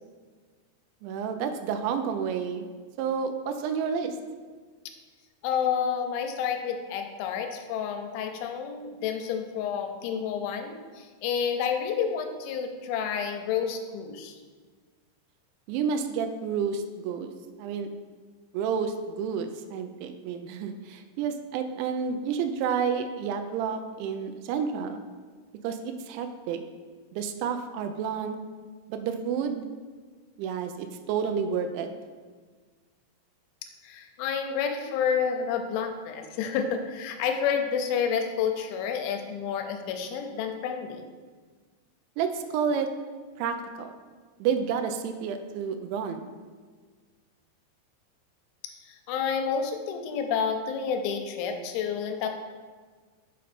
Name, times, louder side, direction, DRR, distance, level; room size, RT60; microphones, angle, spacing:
voice 1, 1.0-2.7 3.0-4.2 15.7-17.3 17.6-17.9 18.5-25.0 25.6-26.6 27.1-28.4 28.9-29.7 30.4-31.9 42.2-42.9 43.4-43.9 44.4-46.3, right 6 dB, 85° right, 7 dB, 2.6 m, -30 dB
voice 2, 5.4-14.4 33.8-41.0 48.9-52.3, left 7 dB, 80° left, 5 dB, 2.9 m, -29 dB
6.7 x 5.1 x 4.2 m, 1.5 s
omnidirectional pair, 5.7 m